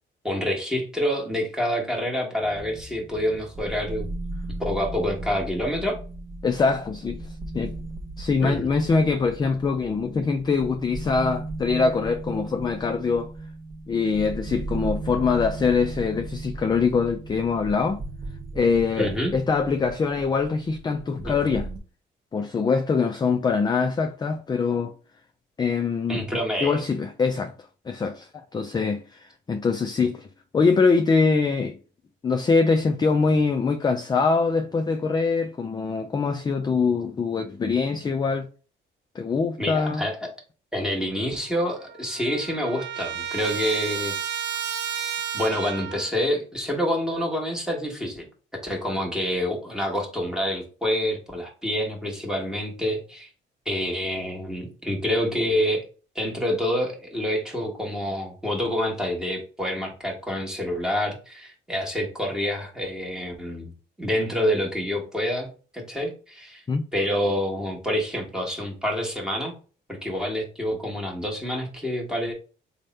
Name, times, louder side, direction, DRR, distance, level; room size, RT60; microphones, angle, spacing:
voice 1, 0.2-4.1 4.6-6.0 8.4-8.7 19.0-19.3 21.2-21.3 26.1-26.8 39.6-40.2 40.7-44.1 45.3-48.3 48.6-53.3 53.6-55.8 56.1-63.7 64.0-65.5 65.7-66.6 66.9-69.5 69.9-72.3, equal, 5° right, 1.2 m, -27 dB
sound 1, 2.4-21.8, right 2 dB, 30° right, 0.6 m, -36 dB
voice 2, 6.4-7.3 7.5-7.8 8.2-13.3 13.9-18.0 18.5-21.7 22.3-24.9 25.6-26.2 26.6-27.5 27.9-30.3 30.5-31.8 32.2-38.5 39.1-40.0 66.7-66.8, left 4 dB, 20° left, 0.3 m, -23 dB
Trumpet, 41.4-41.5 41.7-46.1, right 8 dB, 65° right, 0.6 m, -32 dB
3.3 x 2.2 x 4.0 m
cardioid pair, 90°, 20 cm